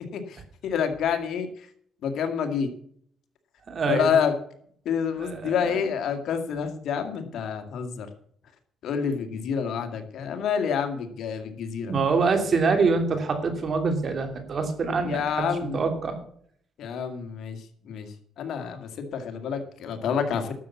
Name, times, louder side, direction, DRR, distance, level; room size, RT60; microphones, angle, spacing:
voice 1, 0.6-1.5 2.0-2.7 3.9-4.3 4.9-8.1 8.8-11.9 15.0-15.8 16.8-20.5, left 7 dB, 75° left, 6 dB, 2.1 m, -28 dB
voice 2, 3.7-4.2 5.2-5.9 11.9-15.5 15.7-16.2, right 4 dB, 50° right, 6 dB, 2.9 m, -25 dB
12.5 x 7.1 x 7.2 m, 0.62 s
cardioid pair, 90°, 0 cm